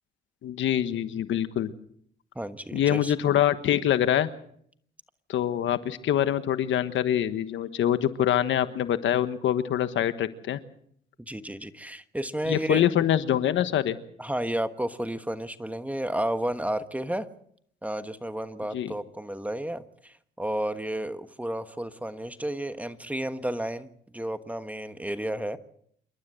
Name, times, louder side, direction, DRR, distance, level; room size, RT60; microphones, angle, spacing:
voice 1, 0.4-1.7 2.7-4.3 5.3-10.6 12.5-14.0 18.7-18.9, left 11 dB, 75° left, 12 dB, 1.3 m, -25 dB
voice 2, 2.3-3.1 11.2-12.8 14.2-17.3 17.8-25.6, right 1 dB, 5° right, 10 dB, 1.3 m, -32 dB
28.0 x 12.5 x 7.8 m, 0.67 s
cardioid pair, 90°, 20 cm